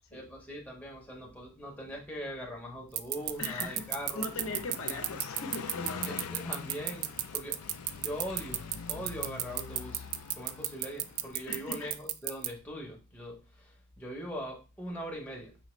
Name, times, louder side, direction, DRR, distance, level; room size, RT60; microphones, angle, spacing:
voice 1, 0.1-4.2 6.0-10.1 10.3-15.6, equal, 5° left, -2 dB, 0.7 m, -41 dB
sound 1, 3.0-12.5, right 14 dB, 70° right, 0.3 m, -31 dB
Car passing by, 3.1-11.6, left 6 dB, 80° left, 0.4 m, -44 dB
voice 2, 3.4-6.3 11.5-11.9, left 3 dB, 60° left, 3 dB, 0.8 m, -39 dB
4.8 x 2.6 x 3.1 m, 0.32 s
head